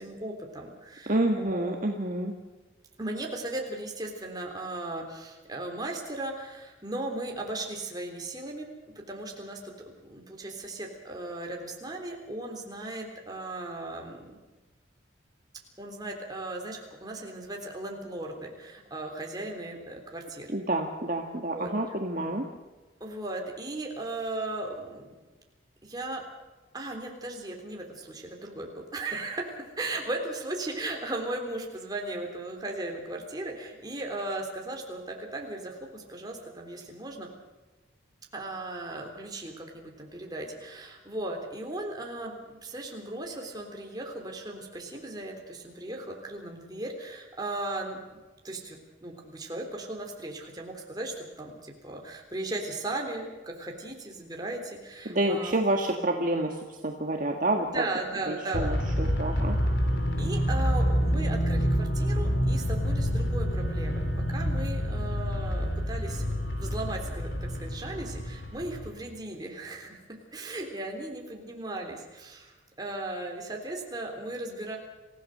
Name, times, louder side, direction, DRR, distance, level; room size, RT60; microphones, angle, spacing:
voice 1, 0.0-1.7 3.0-8.7 9.0-9.7 10.0-14.3 15.8-20.5 21.5-22.0 23.0-25.1 25.8-26.2 26.7-37.3 38.3-48.2 48.4-55.6 57.6-58.7 60.2-64.0 64.3-70.0 70.3-74.8, right 2 dB, 20° right, 1 dB, 3.6 m, -37 dB
voice 2, 1.1-2.3 20.5-22.4 55.1-56.6 56.8-57.8 58.3-59.6, right 1 dB, 40° right, 2 dB, 1.7 m, -28 dB
sound 1, 58.5-68.9, equal, 65° left, 3.1 m, -28 dB
27.5 x 16.0 x 6.7 m, 1.2 s
head